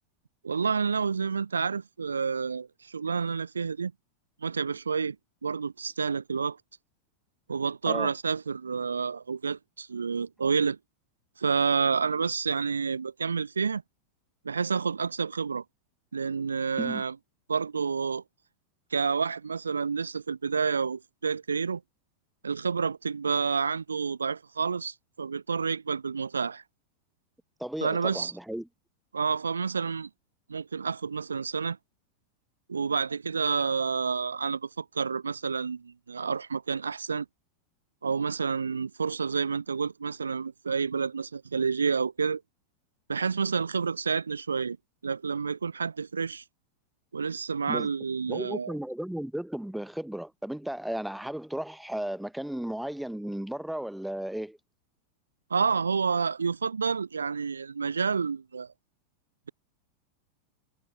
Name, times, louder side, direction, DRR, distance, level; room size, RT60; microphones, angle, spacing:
voice 1, 0.4-3.9 4.4-5.2 5.4-6.6 7.5-10.8 11.4-13.8 14.4-15.6 16.1-17.2 17.5-18.2 18.9-21.8 22.4-26.6 27.8-28.3 29.1-30.1 30.5-31.8 32.7-37.3 38.0-42.4 43.1-44.8 45.0-46.4 47.1-48.7 55.5-58.7, right 5 dB, 75° right, 0.7 m, -29 dB
voice 2, 27.6-28.7 47.7-47.9 48.3-54.6, right 1 dB, ahead, 0.8 m, -34 dB
figure-of-eight pair, 90°, 0 cm